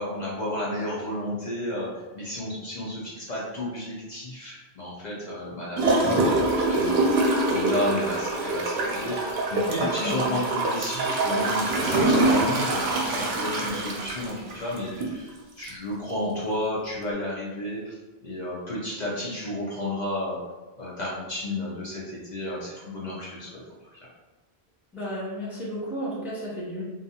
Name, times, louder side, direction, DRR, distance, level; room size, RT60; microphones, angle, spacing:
voice 1, 0.0-7.1 7.5-17.9 18.2-20.4 20.8-23.6 23.9-24.0, left 1 dB, 50° left, -6 dB, 0.6 m, -32 dB
Gurgling / Toilet flush, 5.8-15.2 15.7-15.8, right 2 dB, 75° right, 0.8 m, -24 dB
voice 2, 10.0-10.4 24.9-26.8, equal, ahead, -7 dB, 0.5 m, -33 dB
2.4 x 2.3 x 2.7 m, 1.2 s
omnidirectional pair, 1.1 m